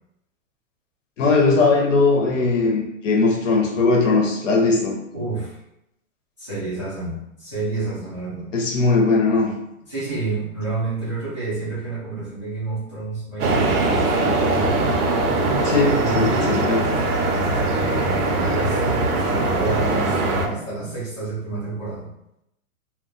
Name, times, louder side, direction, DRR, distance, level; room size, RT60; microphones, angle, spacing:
voice 1, 1.2-4.9 8.5-9.5 15.6-16.8, left 3 dB, 55° left, 0 dB, 0.8 m, -19 dB
voice 2, 5.1-5.6 6.4-8.5 9.9-14.7 15.8-16.6 17.5-22.1, right 3 dB, 20° right, -12 dB, 0.4 m, -30 dB
sound 1, 13.4-20.5, right 2 dB, 85° right, 0.8 m, -21 dB
2.3 x 2.2 x 3.7 m, 0.83 s
hypercardioid pair, 175°, 44 cm